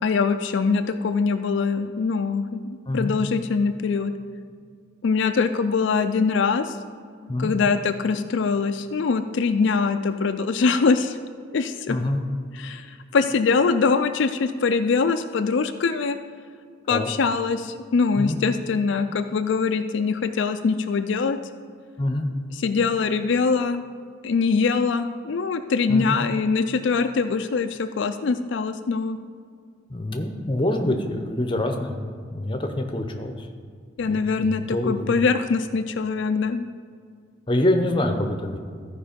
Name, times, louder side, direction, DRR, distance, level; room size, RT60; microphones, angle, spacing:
voice 1, 0.0-4.1 5.0-6.8 7.4-11.2 11.5-12.0 12.5-16.2 16.9-21.4 22.5-23.8 24.2-29.2 34.0-36.6, left 4 dB, 70° left, 8 dB, 0.4 m, -23 dB
voice 2, 11.9-12.2 16.9-17.1 18.2-18.4 22.0-22.3 25.9-26.2 29.9-33.5 34.0-35.2 37.5-38.6, left 1 dB, 25° left, 5 dB, 0.7 m, -26 dB
14.0 x 4.8 x 5.1 m, 2.1 s
head